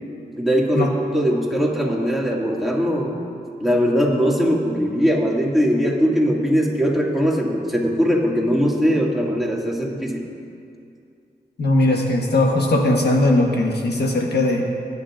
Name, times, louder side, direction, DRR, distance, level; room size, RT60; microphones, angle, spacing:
voice 1, 0.4-3.1 3.6-10.2, equal, ahead, -3 dB, 2.2 m, -20 dB
voice 2, 11.6-14.7, left 1 dB, 70° left, 1 dB, 1.2 m, -19 dB
22.5 x 10.0 x 2.5 m, 2.5 s
cardioid pair, 60°, 18 cm